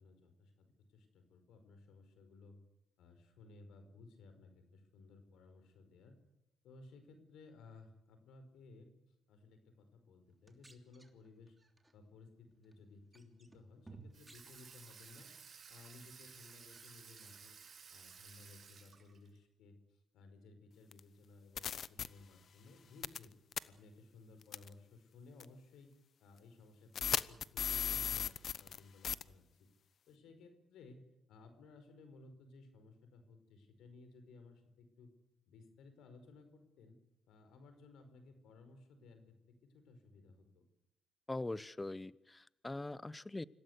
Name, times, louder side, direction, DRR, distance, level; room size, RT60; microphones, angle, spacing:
voice 1, 0.0-2.5 3.0-6.2 6.6-8.9 9.3-11.6 11.9-15.3 15.7-17.6 17.9-19.8 20.1-23.3 23.6-25.9 26.2-29.7 30.1-35.1 35.5-37.0 37.2-39.3 39.7-40.6, left 3 dB, 80° left, 8 dB, 5.1 m, -59 dB
sound 1, 10.3-11.9 12.5-12.8 13.1-15.4 15.8-16.3 16.6-17.4, right 3 dB, 15° right, 3.1 m, -60 dB
Water tap faucet / Sink (filling or washing), 14.1-19.4, right 6 dB, 50° right, 5.4 m, -56 dB
sound 2, 20.9-21.0 21.6-22.1 23.0-23.3 23.5-23.6 24.5-24.7 25.4-25.5 27.0-28.8 29.0-29.2, left 8 dB, 55° left, 0.9 m, -36 dB
voice 2, 41.3-43.4, left 2 dB, 15° left, 19 dB, 0.8 m, -42 dB
26.0 x 17.5 x 8.3 m, 0.84 s
cardioid pair, 90°, 0 cm